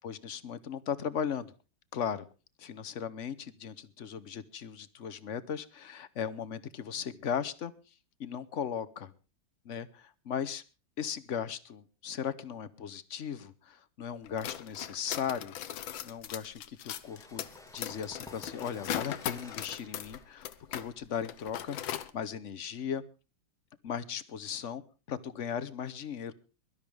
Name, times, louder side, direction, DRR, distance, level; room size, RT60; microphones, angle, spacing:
voice 1, 0.0-1.5 1.9-2.3 2.6-7.7 8.2-9.1 9.6-10.6 11.0-15.5 16.0-17.4 17.7-23.0 23.8-24.8 25.1-26.3, left 8 dB, 50° left, 14 dB, 1.0 m, -37 dB
sound 1, 14.2-20.9 21.2-22.1, left 11 dB, 90° left, 1.7 m, -39 dB
sound 2, 16.8-22.3, left 1 dB, ahead, 1.3 m, -54 dB
22.5 x 12.5 x 3.4 m, 0.33 s
omnidirectional pair, 2.1 m